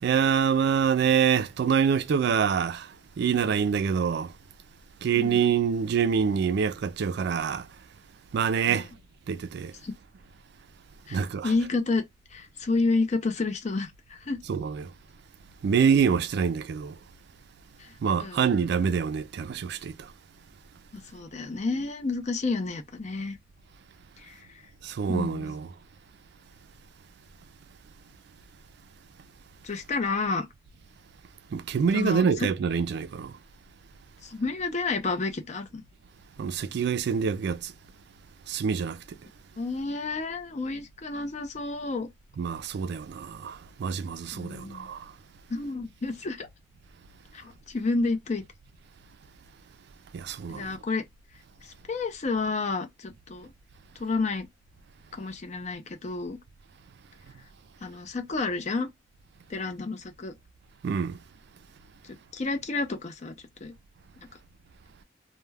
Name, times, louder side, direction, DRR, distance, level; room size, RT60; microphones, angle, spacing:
voice 1, 0.0-2.9 3.2-4.3 5.0-7.7 8.3-8.9 9.3-9.7 11.1-11.5 14.5-14.9 15.6-17.0 18.0-20.1 24.8-25.7 31.5-33.3 36.4-37.7 38.5-39.0 42.4-45.1 50.1-50.8 60.8-61.2, right 6 dB, 60° right, 0.3 m, -26 dB
voice 2, 11.1-12.0 12.3-14.4 17.8-17.9 18.2-18.5 20.9-23.4 24.2-24.5 25.1-25.6 29.6-30.5 31.9-32.5 34.2-35.8 39.6-42.1 44.3-44.9 45.5-46.5 47.3-48.4 50.5-51.0 51.6-53.5 54.0-54.5 55.1-56.4 57.8-58.9 59.5-60.3 62.0-63.3 63.6-63.7, left 3 dB, 40° left, 0.5 m, -30 dB
2.2 x 2.1 x 3.2 m
head